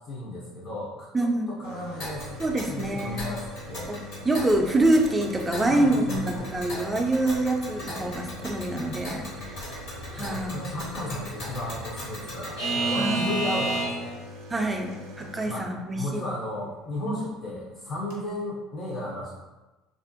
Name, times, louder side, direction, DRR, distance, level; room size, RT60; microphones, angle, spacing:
voice 1, 0.0-3.9 5.6-6.6 10.2-14.2 15.5-19.4, left 1 dB, 45° left, -5 dB, 0.6 m, -35 dB
voice 2, 1.1-1.6 2.4-3.3 3.9-9.7 10.1-10.8 13.0-13.4 14.5-16.2 17.1-17.3, right 1 dB, 20° right, 3 dB, 0.4 m, -26 dB
sound 1, 1.6-16.2 17.6-17.7 17.8-18.3, left 1 dB, 80° right, 0.4 m, -43 dB
Alarm / Clock, 2.0-14.2, right 2 dB, 65° left, 1.1 m, -34 dB
2.4 x 2.1 x 2.5 m, 1.1 s
hypercardioid pair, 75°, 0 cm